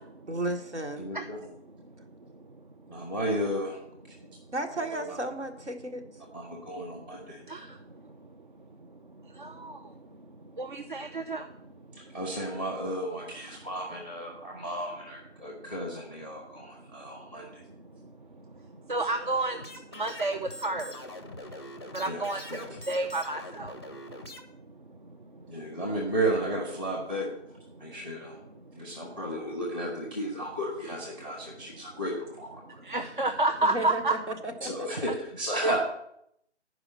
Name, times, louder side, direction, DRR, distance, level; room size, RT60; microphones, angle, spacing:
voice 1, 0.3-1.1 4.5-6.0 33.6-34.7 35.0-35.1, right 1 dB, 70° right, 5 dB, 1.6 m, -34 dB
voice 2, 1.0-1.4 2.9-3.8 5.0-5.1 6.3-7.4 11.9-17.6 22.0-22.7 25.5-27.3 27.8-28.3 28.8-32.8 34.6-35.8, right 1 dB, 10° right, -2 dB, 0.8 m, -33 dB
voice 3, 9.4-9.7 10.6-11.4 18.9-19.6 20.0-20.8 21.9-22.4 22.9-23.7 32.9-34.1 35.6-35.8, right 2 dB, 45° right, 6 dB, 0.6 m, -29 dB
sound 1, 19.5-24.4, left 1 dB, 20° left, 0.5 m, -43 dB
11.0 x 4.9 x 5.9 m, 0.75 s
figure-of-eight pair, 150°, 36 cm